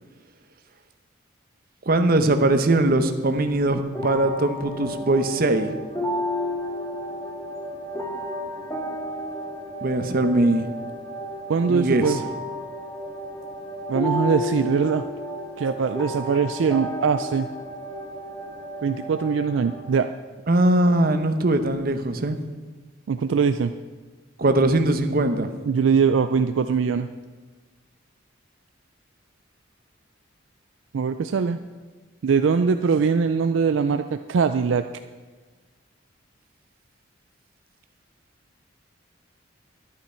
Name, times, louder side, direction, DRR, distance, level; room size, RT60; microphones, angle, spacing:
voice 1, 1.9-5.7 9.8-10.6 11.7-12.1 20.5-22.4 24.4-25.5, right 2 dB, 50° right, 8 dB, 0.8 m, -21 dB
sound 1, 3.9-19.9, equal, 15° left, 1.7 m, -32 dB
voice 2, 11.5-12.2 13.9-15.0 15.6-17.5 18.8-20.1 23.1-23.7 25.7-27.1 30.9-31.6 32.2-34.8, right 5 dB, 70° right, 9 dB, 0.4 m, -22 dB
11.5 x 11.0 x 4.4 m, 1.3 s
head